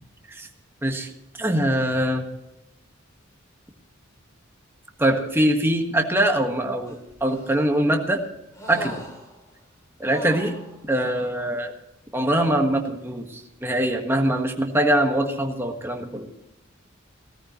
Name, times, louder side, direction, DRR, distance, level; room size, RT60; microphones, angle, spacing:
voice 1, 0.8-1.1 1.4-2.3 5.0-8.2 8.7-9.0 10.0-10.6 10.9-11.7 12.1-16.3, right 1 dB, 10° right, 2 dB, 1.5 m, -23 dB
sound 1, 6.9-7.8 8.5-9.6 10.0-11.3 12.4-12.5, equal, 15° left, 3.4 m, -41 dB
18.0 x 13.5 x 3.1 m, 0.90 s
head